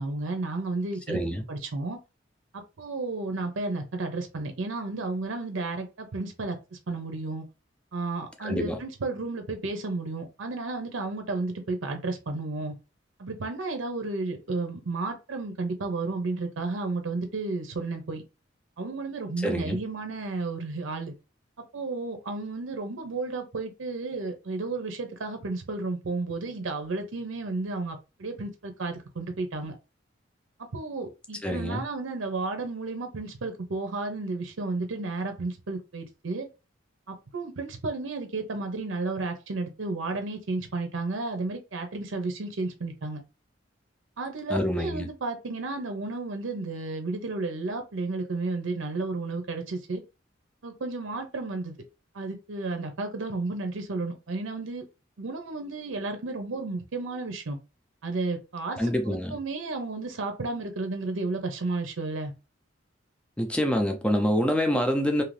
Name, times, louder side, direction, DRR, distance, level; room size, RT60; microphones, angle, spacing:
voice 1, 0.0-1.2 1.5-2.0 2.8-7.5 7.9-12.7 13.2-18.2 18.8-21.1 21.7-29.7 30.7-36.5 37.1-43.2 44.2-50.0 50.6-51.8 52.1-54.9 55.2-57.6 58.0-62.3, right 3 dB, 85° right, 0.6 m, -32 dB
voice 2, 1.1-1.4 8.4-8.8 19.4-19.8 31.4-31.8 44.5-45.1 58.8-59.4 63.4-65.2, equal, 5° left, 0.4 m, -26 dB
2.7 x 2.5 x 3.2 m
head